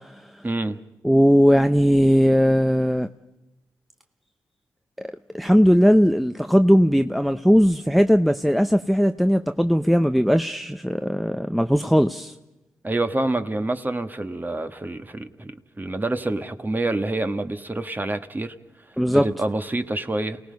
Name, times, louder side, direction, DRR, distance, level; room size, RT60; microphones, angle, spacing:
voice 1, 0.4-0.8 12.8-18.5 19.1-20.4, right 2 dB, 25° right, 1.7 m, -27 dB
voice 2, 1.0-3.1 5.3-12.3 19.0-19.3, equal, ahead, 0.8 m, -18 dB
28.5 x 18.0 x 5.4 m
cardioid pair, 55°, 8 cm